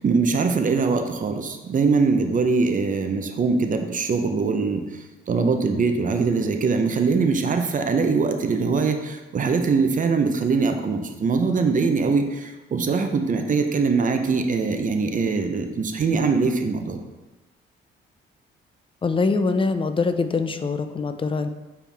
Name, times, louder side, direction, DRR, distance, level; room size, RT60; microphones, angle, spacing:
voice 1, 0.0-4.8 5.3-17.0, right 4 dB, 40° right, 6 dB, 0.7 m, -22 dB
voice 2, 19.0-21.5, left 4 dB, 25° left, 9 dB, 0.5 m, -23 dB
7.2 x 4.5 x 3.5 m, 1.1 s
cardioid pair, 90°, 20 cm